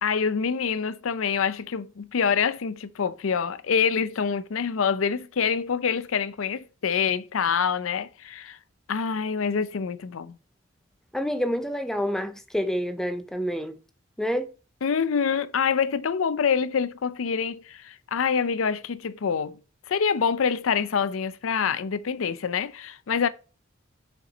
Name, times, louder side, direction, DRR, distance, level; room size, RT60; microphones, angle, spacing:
voice 1, 0.0-8.6 8.9-10.4 14.8-19.6 19.9-23.3, left 6 dB, 85° left, 0.5 m, -26 dB
voice 2, 11.1-13.7 14.2-14.5, equal, ahead, 0.6 m, -28 dB
6.6 x 4.5 x 4.1 m
head